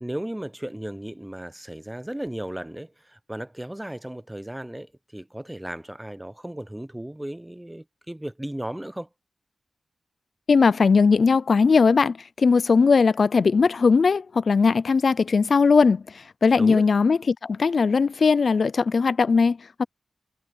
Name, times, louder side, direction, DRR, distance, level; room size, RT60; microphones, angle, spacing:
voice 1, 0.0-9.1 16.6-16.9, right 1 dB, 10° right, 0.6 m, -35 dB
voice 2, 10.5-19.8, left 5 dB, 65° left, 0.3 m, -19 dB
wide cardioid pair, 115°, 0 cm